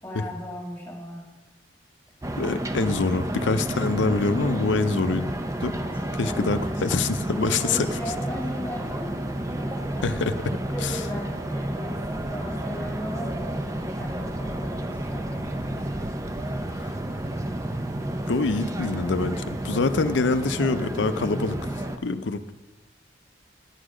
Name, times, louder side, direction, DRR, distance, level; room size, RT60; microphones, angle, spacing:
voice 1, 0.0-1.2 5.7-6.5 7.6-9.3 9.6-10.0 10.7-16.0, left 1 dB, 10° left, -3 dB, 2.3 m, -37 dB
sound 1, 2.2-22.0, right 1 dB, 15° right, 0.5 m, -31 dB
voice 2, 2.4-5.3 5.6-5.7 6.2-7.9 10.0-11.0 16.7-16.9 18.3-21.6 22.0-22.5, left 3 dB, 80° left, 11 dB, 0.6 m, -25 dB
10.5 x 8.2 x 4.9 m, 1.2 s
head